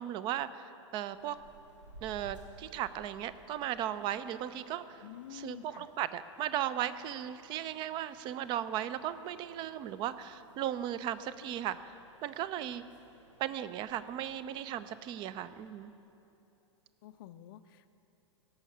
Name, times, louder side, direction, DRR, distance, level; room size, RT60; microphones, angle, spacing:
voice 1, 0.0-1.4 2.0-5.0 5.3-11.8 12.2-12.8 13.4-15.9, right 11 dB, 30° right, 15 dB, 0.5 m, -36 dB
sound 1, 1.0-15.7, right 1 dB, 75° right, 1.8 m, -59 dB
voice 2, 5.0-5.9 17.0-17.9, left 13 dB, 45° left, 10 dB, 0.4 m, -49 dB
17.0 x 6.2 x 7.0 m, 2.9 s
figure-of-eight pair, 100°, 16 cm